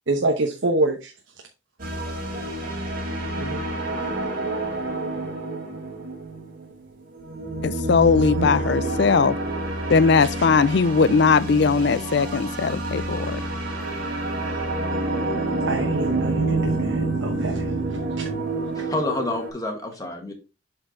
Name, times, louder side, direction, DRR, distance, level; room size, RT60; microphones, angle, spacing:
voice 1, 0.1-1.1 1.8-1.9 3.4-3.7 8.4-8.5 10.1-10.5 14.4-14.7 15.7-18.3, right 2 dB, 70° right, 1.0 m, -27 dB
sound 1, 1.8-19.5, right 2 dB, 45° right, 3.0 m, -28 dB
voice 2, 7.6-9.4 9.9-13.4, left 5 dB, 60° left, 0.4 m, -19 dB
voice 3, 18.7-20.3, left 2 dB, 20° left, 1.6 m, -28 dB
8.1 x 4.5 x 3.8 m
head